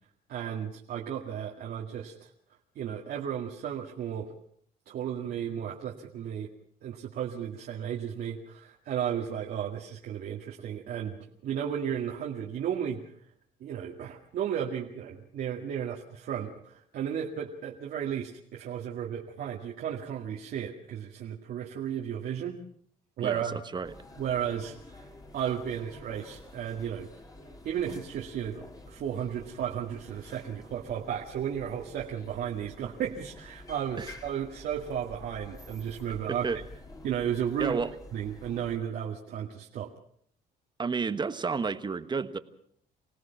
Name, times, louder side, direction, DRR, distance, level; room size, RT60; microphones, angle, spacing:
voice 1, 0.3-2.3 2.8-4.3 4.9-6.5 6.8-13.0 13.6-22.6 23.2-23.6 24.2-27.1 27.6-36.5 37.0-37.8 38.1-39.9, right 9 dB, 65° right, -1 dB, 2.1 m, -34 dB
voice 2, 23.2-23.9 34.0-34.1 36.3-36.6 37.6-37.9 40.8-42.4, right 5 dB, 25° right, 11 dB, 1.2 m, -31 dB
sound 1, 23.8-38.8, left 1 dB, 20° left, 2.9 m, -49 dB
25.5 x 17.5 x 5.9 m, 0.66 s
cardioid pair, 110°, 17 cm